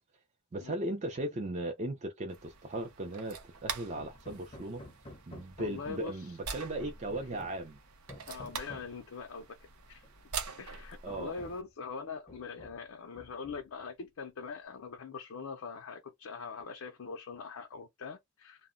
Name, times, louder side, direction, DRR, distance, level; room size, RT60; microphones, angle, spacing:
voice 1, 0.5-4.8 5.3-7.8 11.0-11.3, right 1 dB, 30° right, 0.4 m, -37 dB
sound 1, 2.3-11.6, right 6 dB, 90° right, 0.6 m, -45 dB
Hammer, 4.0-6.2 6.8-7.7 8.1-9.0 10.0-10.1 10.5-10.7 11.1-11.7 12.3-12.9 13.2-13.8, left 1 dB, 25° left, 0.5 m, -51 dB
voice 2, 5.6-6.2 8.3-9.6 9.9-10.1 10.6-18.7, left 5 dB, 75° left, 0.5 m, -43 dB
2.1 x 2.0 x 3.6 m
head